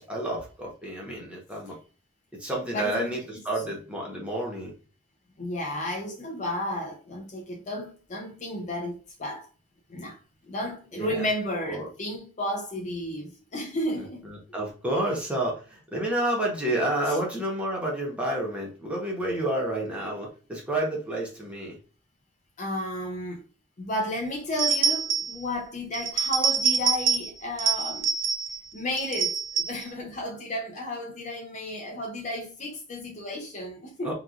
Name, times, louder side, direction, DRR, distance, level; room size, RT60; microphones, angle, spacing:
voice 1, 0.0-1.7 2.4-4.7 10.9-11.3 11.7-11.9 14.3-21.8 34.0-34.1, right 1 dB, 5° right, 0.9 m, -30 dB
voice 2, 2.7-3.4 5.4-9.5 9.9-10.2 10.4-14.3 17.1-17.2 22.6-23.4 23.8-28.1 28.7-34.1, left 1 dB, 40° left, 0.5 m, -33 dB
sound 1, 24.6-25.4 25.9-27.3 27.6-28.6 29.0-29.8, right 5 dB, 70° right, 0.4 m, -26 dB
2.9 x 2.3 x 2.4 m
head